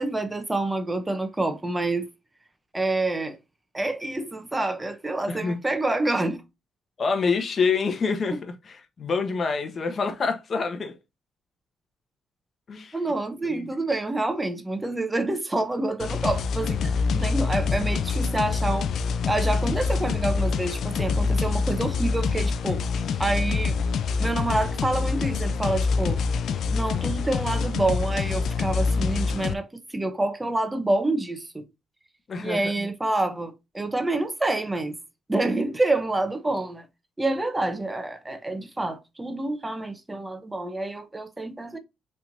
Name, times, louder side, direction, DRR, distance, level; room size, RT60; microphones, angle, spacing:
voice 1, 0.0-2.1 2.7-3.4 3.7-6.4 8.3-8.4 12.9-18.9 19.3-22.8 23.2-23.8 24.2-26.2 26.7-31.6 32.4-35.0 35.3-36.9 37.2-41.8, right 2 dB, 15° right, 1.0 m, -27 dB
voice 2, 5.3-5.6 7.0-10.9 12.7-13.0 13.6-13.7 32.3-32.9, left 4 dB, 45° left, 1.1 m, -27 dB
sound 1, 16.0-29.5, left 5 dB, 65° left, 0.4 m, -25 dB
5.7 x 3.5 x 2.6 m
cardioid pair, 90°, 0 cm